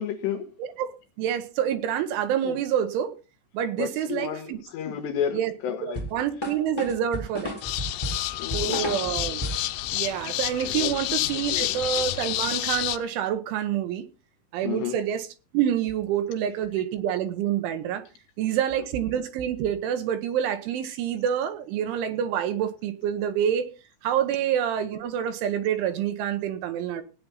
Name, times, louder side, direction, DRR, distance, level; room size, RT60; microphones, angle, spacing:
voice 1, 0.0-0.5 2.4-2.6 3.8-6.1 8.4-8.9 10.8-11.0 11.3-12.0 14.6-15.0, left 8 dB, 70° left, 2.9 m, -32 dB
voice 2, 0.6-3.1 3.5-4.6 5.3-5.5 5.8-7.6 8.5-9.5 9.9-14.1 14.5-15.3 15.5-18.0 18.4-23.7 24.0-27.0, right 9 dB, 75° right, 3.5 m, -27 dB
sound 1, 5.9-9.8, equal, 10° left, 1.1 m, -32 dB
sound 2, 7.6-13.0, left 16 dB, 85° left, 3.6 m, -29 dB
17.5 x 9.6 x 4.0 m
omnidirectional pair, 5.9 m